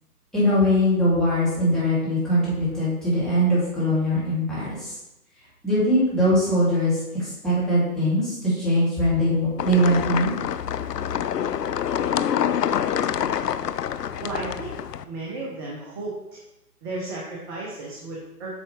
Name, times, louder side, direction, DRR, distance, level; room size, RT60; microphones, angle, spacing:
voice 1, 0.3-5.0 5.6-10.3, equal, ahead, -11 dB, 2.4 m, -21 dB
sound 1, 9.6-15.0, left 9 dB, 85° left, 0.5 m, -26 dB
voice 2, 14.2-14.8 15.1-16.4 16.8-18.5, right 2 dB, 15° right, -4 dB, 0.7 m, -34 dB
8.2 x 5.6 x 3.1 m, 0.94 s
figure-of-eight pair, 135°, 47 cm